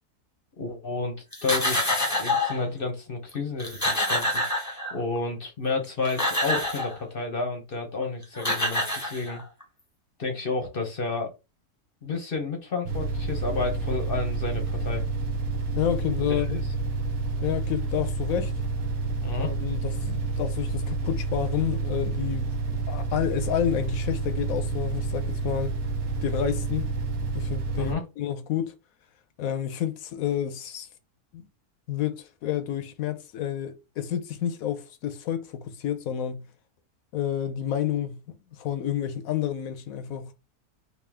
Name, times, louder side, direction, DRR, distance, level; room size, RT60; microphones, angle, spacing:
voice 1, 0.6-1.2 1.4-4.4 4.9-9.4 10.2-11.3 12.0-15.0 16.2-16.6 19.2-19.5 27.8-28.0, left 3 dB, 45° left, 0.8 m, -31 dB
sound 1, 1.3-2.6 3.3-3.4 3.6-5.2 5.8-7.0 8.0-8.1 8.4-9.6, left 1 dB, 15° left, 0.9 m, -27 dB
sound 2, 12.8-27.9, right 3 dB, 70° right, 1.2 m, -29 dB
voice 2, 15.8-16.6 17.4-18.5 19.4-22.5 22.9-25.8 26.2-26.9 27.3-28.7 29.4-30.9 31.3-31.4 31.9-36.5 37.1-40.3, left 10 dB, 70° left, 1.0 m, -30 dB
3.6 x 2.7 x 3.4 m
omnidirectional pair, 1.6 m